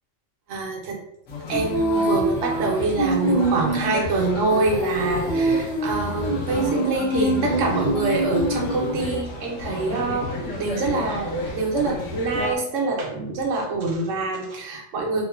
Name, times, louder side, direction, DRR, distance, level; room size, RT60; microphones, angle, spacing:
voice 1, 0.5-1.0 1.5-15.3, right 3 dB, 80° right, 0 dB, 1.0 m, -25 dB
sound 1, 1.3-12.5, left 3 dB, 75° left, 1.0 m, -32 dB
Female singing, 1.5-9.2, right 2 dB, 35° left, 0.6 m, -25 dB
3.0 x 2.1 x 2.3 m, 0.76 s
omnidirectional pair, 1.3 m